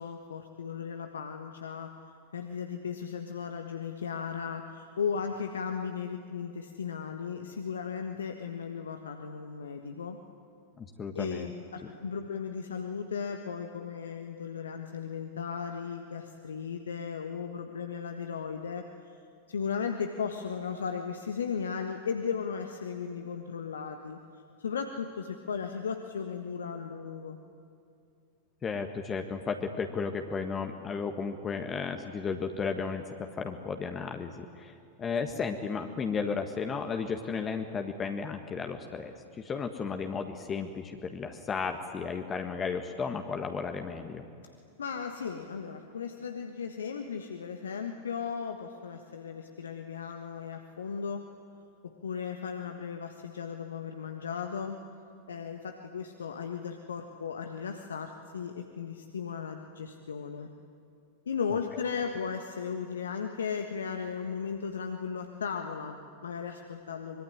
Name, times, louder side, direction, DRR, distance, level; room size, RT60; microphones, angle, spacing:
voice 1, 0.0-1.9 2.3-10.2 11.1-18.8 19.5-24.2 24.6-27.4 44.8-51.2 52.0-54.8 55.3-60.5 61.3-67.2, left 6 dB, 70° left, 5 dB, 1.4 m, -36 dB
voice 2, 10.8-11.5 28.6-44.2, left 5 dB, 20° left, 5 dB, 1.6 m, -34 dB
25.0 x 22.5 x 9.7 m, 2.5 s
figure-of-eight pair, 90°, 0 cm